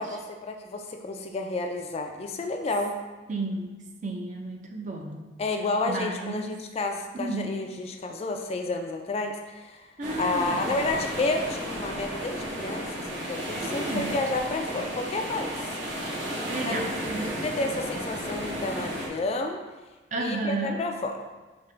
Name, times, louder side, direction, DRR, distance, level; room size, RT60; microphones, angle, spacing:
voice 1, 0.0-3.0 5.4-9.8 10.2-15.5 16.7-16.9 17.4-19.6 20.2-21.2, left 2 dB, 35° left, 4 dB, 0.3 m, -30 dB
voice 2, 3.3-3.8 4.0-5.3 5.9-6.5 7.1-7.6 10.0-10.8 13.6-14.2 16.5-17.5 20.1-20.9, right 2 dB, 40° right, 2 dB, 0.5 m, -32 dB
sound 1, 10.0-19.1, equal, 65° right, 0.9 m, -33 dB
5.2 x 2.8 x 3.3 m, 1.2 s
head